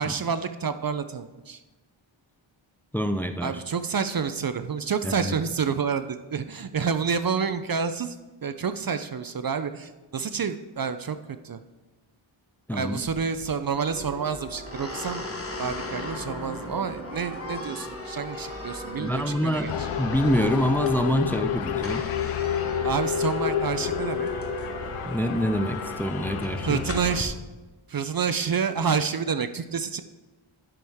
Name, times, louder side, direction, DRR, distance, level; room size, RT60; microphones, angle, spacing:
voice 1, 0.0-1.6 3.4-8.2 8.4-11.2 11.4-11.6 12.7-15.3 15.6-19.9 22.8-24.3 26.6-27.4 27.9-30.0, right 6 dB, 45° right, 11 dB, 0.5 m, -28 dB
voice 2, 2.9-3.6 5.0-5.3 12.7-13.0 19.0-22.1 25.1-26.8, equal, 5° left, 8 dB, 0.5 m, -26 dB
sound 1, 13.0-27.2, left 3 dB, 25° left, 1.2 m, -41 dB
sound 2, 13.8-27.3, equal, 15° right, 2.0 m, -38 dB
sound 3, 19.7-27.2, left 10 dB, 80° left, 0.5 m, -30 dB
10.5 x 6.3 x 3.5 m, 1.1 s
cardioid pair, 50°, 50 cm